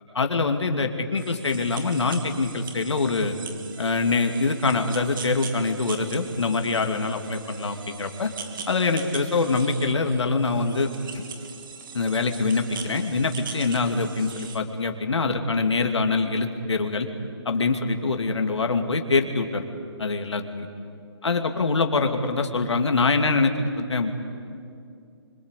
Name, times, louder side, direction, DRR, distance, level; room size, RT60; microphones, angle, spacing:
voice 1, 0.1-3.3 3.8-8.3 8.7-10.9 11.9-17.1 17.4-19.6 20.0-20.7 21.2-24.1, left 3 dB, 80° left, 5 dB, 2.6 m, -24 dB
sound 1, 1.2-14.6, right 6 dB, 50° right, 2.7 m, -41 dB
26.0 x 25.5 x 8.4 m, 2.5 s
hypercardioid pair, 155°, 14 cm